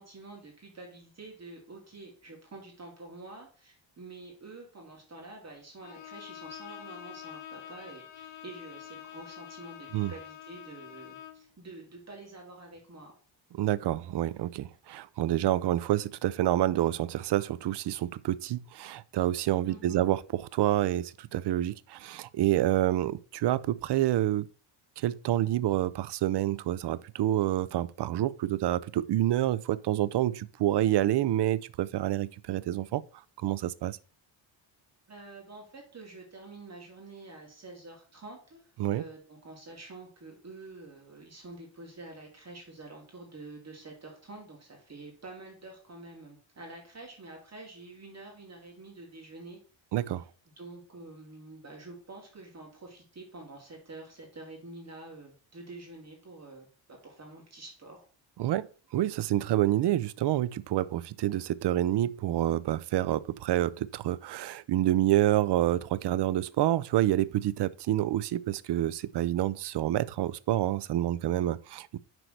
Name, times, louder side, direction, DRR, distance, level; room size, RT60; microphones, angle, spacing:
voice 1, 0.0-13.1 19.6-20.1 35.1-49.6 50.1-50.2 50.5-58.1, right 2 dB, 35° right, 2.8 m, -47 dB
Bowed string instrument, 5.8-11.5, left 11 dB, 65° left, 0.9 m, -46 dB
voice 2, 13.6-24.5 25.0-33.0 33.4-34.0 38.8-39.0 49.9-50.2 58.4-72.0, right 13 dB, 60° right, 0.5 m, -28 dB
6.0 x 4.6 x 6.4 m
cardioid pair, 140°, 47 cm